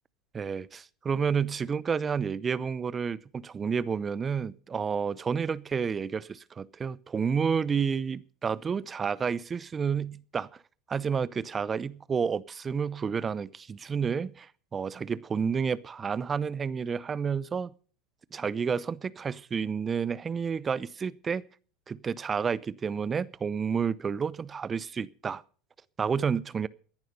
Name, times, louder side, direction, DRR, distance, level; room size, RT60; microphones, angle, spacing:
voice 1, 0.3-10.5 10.9-17.7 18.3-21.4 21.9-25.4 26.0-26.7, right 6 dB, 25° right, 0.6 m, -30 dB
16.0 x 10.5 x 5.4 m
hypercardioid pair, 85°, 0 cm